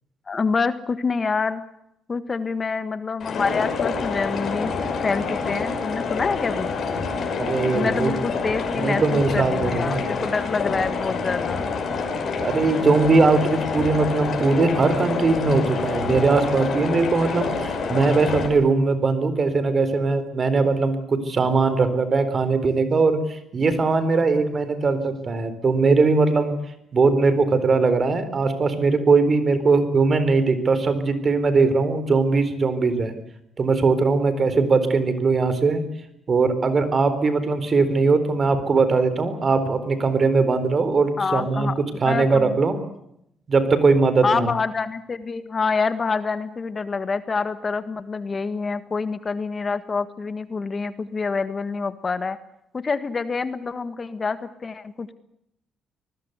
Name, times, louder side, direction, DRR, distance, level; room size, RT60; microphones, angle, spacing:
voice 1, 0.3-1.6 2.1-4.7 5.0-6.7 7.7-11.6 41.2-41.7 42.0-42.6 44.2-52.4 52.7-55.1, left 4 dB, 35° left, 12 dB, 1.6 m, -26 dB
sound 1, 3.2-18.5, left 4 dB, 60° left, 6.1 m, -27 dB
voice 2, 7.4-8.1 8.8-10.1 12.4-26.5 26.9-33.1 33.6-35.8 36.3-41.7 42.0-42.8 43.5-44.5, right 4 dB, 40° right, 12 dB, 4.2 m, -20 dB
25.0 x 20.5 x 8.2 m, 0.77 s
cardioid pair, 90°, 0 cm